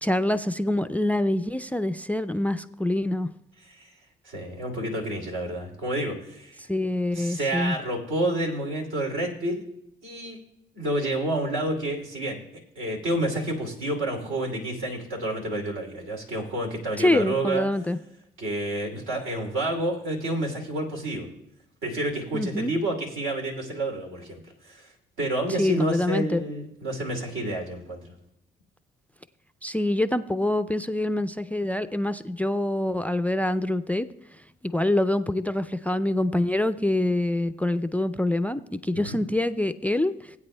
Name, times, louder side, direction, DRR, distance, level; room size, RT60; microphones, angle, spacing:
voice 1, 0.0-3.3 6.7-7.8 17.0-18.0 22.3-22.7 25.6-26.4 29.6-34.1 34.6-40.3, left 1 dB, 5° left, 12 dB, 0.3 m, -25 dB
voice 2, 4.2-6.6 7.1-9.6 10.0-10.4 10.7-12.4 12.8-17.7 18.4-21.3 21.8-24.9 25.2-28.1 38.9-39.2, right 1 dB, 80° right, 1 dB, 2.8 m, -29 dB
20.5 x 8.7 x 2.2 m, 0.81 s
cardioid pair, 90°, 20 cm